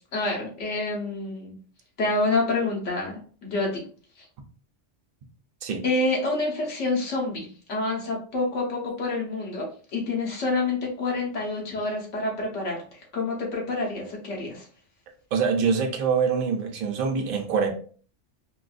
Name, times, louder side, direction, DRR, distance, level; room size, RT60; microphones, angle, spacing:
voice 1, 0.1-1.6 2.0-3.8 5.8-14.7, left 2 dB, 85° left, 1.4 m, -28 dB
voice 2, 15.3-17.7, right 6 dB, 50° right, 0.7 m, -24 dB
3.9 x 2.6 x 2.4 m
omnidirectional pair, 1.2 m